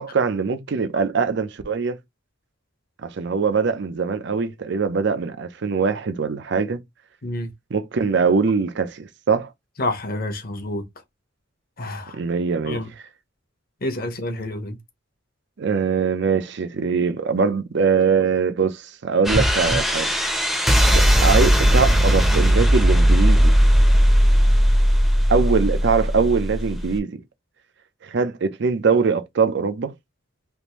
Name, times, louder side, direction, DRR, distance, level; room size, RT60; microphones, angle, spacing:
voice 1, 0.0-2.0 3.0-6.8 7.7-9.5 12.1-12.8 15.6-20.1 20.9-23.5 25.3-27.2 28.0-29.9, right 5 dB, 60° right, 0.5 m, -22 dB
voice 2, 9.8-10.8 11.8-12.2 12.7-12.9 13.8-14.8, left 1 dB, 50° left, 0.9 m, -28 dB
sound 1, 19.2-27.0, equal, ahead, 0.6 m, -17 dB
3.5 x 2.6 x 2.9 m
head